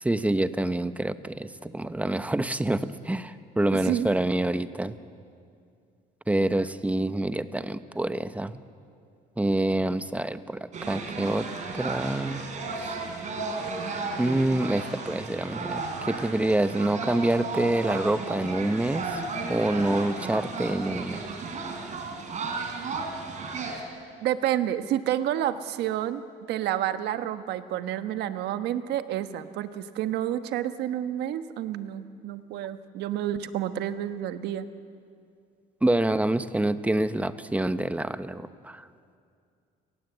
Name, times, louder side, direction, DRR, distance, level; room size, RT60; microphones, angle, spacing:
voice 1, 0.0-5.0 6.3-8.6 9.4-11.5 11.7-12.4 12.8-13.0 14.2-15.8 16.1-19.2 19.5-21.2 35.8-38.8, right 1 dB, 10° right, 12 dB, 0.9 m, -26 dB
voice 2, 3.7-4.2 24.2-34.7, right 11 dB, 80° right, 10 dB, 1.2 m, -29 dB
sound 1, 10.7-23.8, right 3 dB, 45° right, 4.3 m, -34 dB
30.0 x 18.5 x 8.0 m, 2.4 s
cardioid pair, 110°, 17 cm